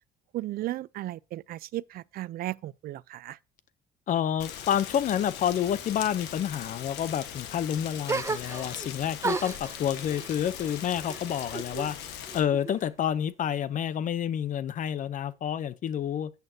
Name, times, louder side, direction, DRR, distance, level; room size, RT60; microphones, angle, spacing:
voice 1, 0.3-3.4, right 15 dB, 60° right, 0.4 m, -35 dB
voice 2, 4.1-12.0 12.3-16.3, left 9 dB, 50° left, 0.7 m, -29 dB
Rain, 4.4-12.4, left 9 dB, 85° left, 1.4 m, -40 dB
sound 1, 8.1-8.9 9.2-11.9 12.3-13.1, right 4 dB, 15° right, 0.6 m, -35 dB
11.0 x 8.2 x 2.8 m
cardioid pair, 110°, 17 cm